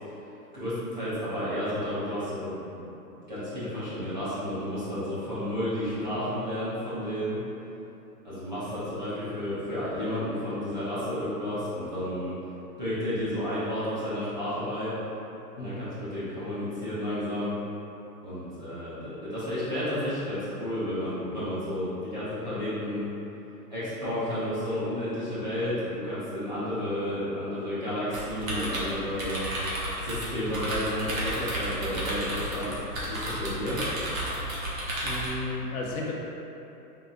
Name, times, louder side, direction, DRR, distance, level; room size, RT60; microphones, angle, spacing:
voice 1, 0.5-2.8 3.3-7.4 8.2-12.3 12.8-14.9 15.6-17.6 18.2-23.1 23.7-29.4 30.0-32.8 33.1-33.8, left 1 dB, 30° right, -13 dB, 0.7 m, -32 dB
sound 1, 28.1-35.3, right 1 dB, 55° right, 0.9 m, -32 dB
voice 2, 35.0-36.1, left 2 dB, 60° left, -3 dB, 0.6 m, -33 dB
3.6 x 2.6 x 2.5 m, 3.0 s
hypercardioid pair, 175°, 49 cm